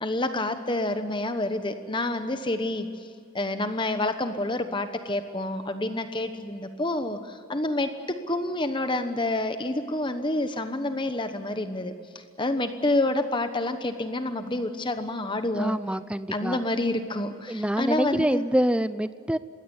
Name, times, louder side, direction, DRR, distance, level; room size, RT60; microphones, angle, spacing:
voice 1, 0.0-2.9 3.3-15.8 16.3-18.4, left 2 dB, 20° left, 9 dB, 1.1 m, -28 dB
voice 2, 15.5-16.6 17.5-19.4, equal, 5° right, 15 dB, 0.5 m, -26 dB
21.5 x 17.0 x 9.6 m, 2.3 s
head